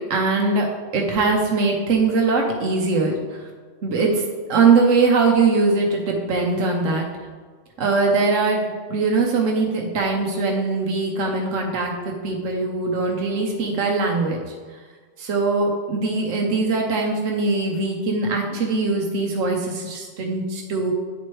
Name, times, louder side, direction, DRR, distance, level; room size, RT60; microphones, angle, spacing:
voice 1, 0.1-3.5 3.8-4.2 4.5-7.0 7.8-14.4 15.2-20.9, right 3 dB, 90° right, 0 dB, 1.2 m, -21 dB
9.4 x 4.4 x 3.1 m, 1.5 s
omnidirectional pair, 1.3 m